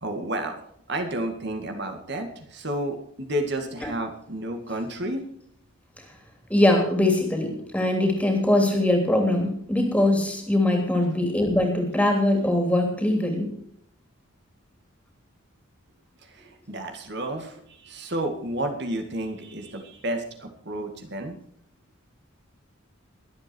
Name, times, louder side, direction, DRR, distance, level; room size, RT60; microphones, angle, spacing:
voice 1, 0.0-5.2 10.9-11.1 16.2-21.4, right 1 dB, 50° right, 4 dB, 2.0 m, -31 dB
voice 2, 6.5-13.5, left 1 dB, 5° left, 3 dB, 3.0 m, -22 dB
22.0 x 8.3 x 4.5 m, 0.68 s
head